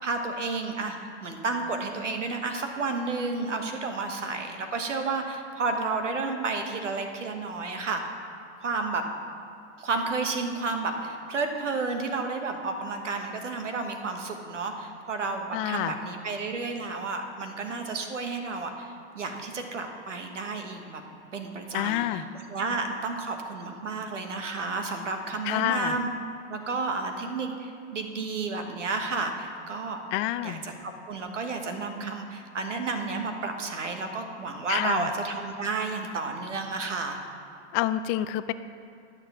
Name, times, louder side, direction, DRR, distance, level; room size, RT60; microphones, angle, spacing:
voice 1, 0.0-8.0 8.6-9.1 9.8-21.0 21.3-22.2 22.5-26.1 26.5-30.0 30.4-37.2, right 3 dB, 80° right, 5 dB, 1.3 m, -31 dB
voice 2, 15.5-15.9 21.7-22.2 25.5-25.9 30.1-30.6 34.7-35.1 37.7-38.5, left 14 dB, 35° left, 13 dB, 0.4 m, -28 dB
12.0 x 6.7 x 5.8 m, 2.5 s
hypercardioid pair, 95°, 36 cm